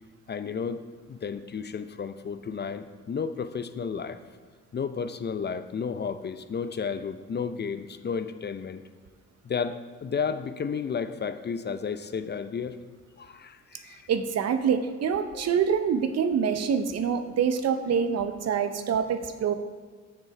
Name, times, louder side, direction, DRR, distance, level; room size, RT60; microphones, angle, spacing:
voice 1, 0.3-4.2 4.7-8.8 9.4-12.8 13.2-14.1 15.3-15.5, left 6 dB, 35° left, 11 dB, 0.5 m, -32 dB
voice 2, 14.1-19.5, right 7 dB, 55° right, 9 dB, 0.7 m, -26 dB
6.7 x 6.6 x 4.9 m, 1.5 s
supercardioid pair, 50°, 30 cm